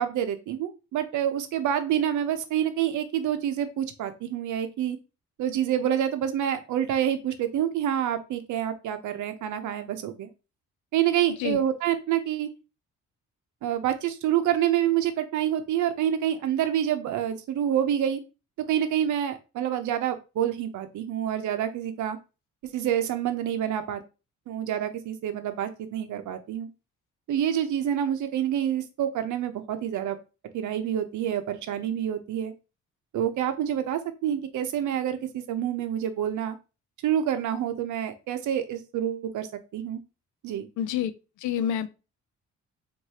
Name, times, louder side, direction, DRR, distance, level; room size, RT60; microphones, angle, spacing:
voice 1, 0.0-5.0 5.4-10.3 10.9-12.5 13.6-18.2 18.7-22.2 22.7-24.0 24.5-26.7 27.3-30.2 30.5-32.5 33.1-36.6 37.0-39.5 39.7-40.0 40.4-40.7, right 10 dB, 75° right, 0.7 m, -27 dB
voice 2, 40.8-41.1 41.4-41.9, left 9 dB, 75° left, 0.5 m, -27 dB
4.7 x 2.6 x 2.8 m
cardioid pair, 90°, 30 cm